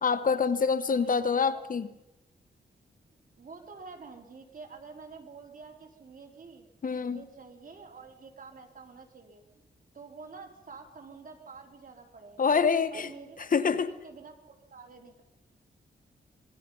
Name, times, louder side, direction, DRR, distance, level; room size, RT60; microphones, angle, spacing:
voice 1, 0.0-1.9 6.8-7.2 12.4-13.1 13.4-13.9, left 5 dB, 50° left, 13 dB, 1.3 m, -26 dB
voice 2, 1.0-1.7 3.4-6.7 7.1-9.7 9.9-12.4 12.9-13.7 14.0-15.2, right 4 dB, 50° right, 3 dB, 3.7 m, -48 dB
25.5 x 21.0 x 5.5 m, 0.94 s
cardioid pair, 80°, 18 cm